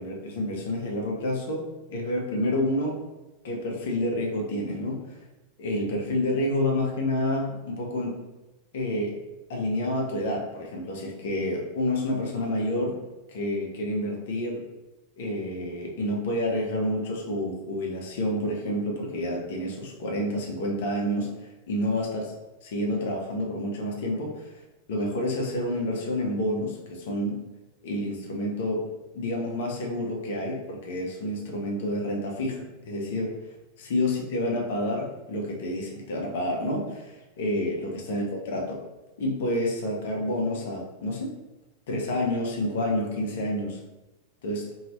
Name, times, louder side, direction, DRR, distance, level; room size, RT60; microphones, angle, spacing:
voice 1, 0.0-3.0 3.4-5.0 5.6-8.1 8.7-9.2 9.5-13.0 13.3-14.6 15.2-21.4 21.7-22.2 22.6-24.4 24.9-27.4 27.8-28.8 29.1-33.3 33.8-38.8 39.2-41.3 41.9-43.8 44.4-44.7, left 1 dB, 55° left, 0 dB, 0.7 m, -29 dB
2.7 x 2.7 x 3.0 m, 1.1 s
figure-of-eight pair, 90°, 0 cm